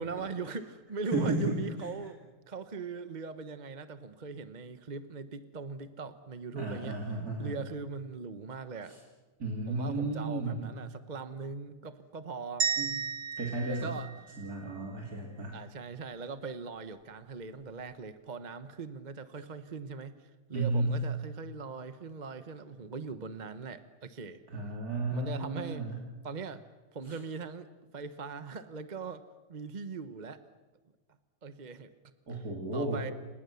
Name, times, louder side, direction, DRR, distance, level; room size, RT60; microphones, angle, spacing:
voice 1, 0.0-7.0 7.4-8.9 9.7-12.7 13.6-14.3 15.5-24.4 25.1-25.9 26.2-26.6 26.9-27.7 27.9-29.2 29.5-30.4 31.4-31.9 32.3-32.5 32.7-33.1, right 4 dB, 35° right, 11 dB, 0.8 m, -40 dB
voice 2, 1.1-1.4 6.6-7.5 9.4-10.7 12.8-12.9 13.4-13.9 14.4-15.6 20.5-20.9 24.5-25.9 27.1-27.2 32.3-33.0, right 2 dB, 50° right, -1 dB, 3.3 m, -33 dB
sound 1, 12.6-14.9, right 6 dB, 70° right, 2.5 m, -34 dB
29.5 x 27.0 x 7.0 m, 1.2 s
omnidirectional pair, 2.1 m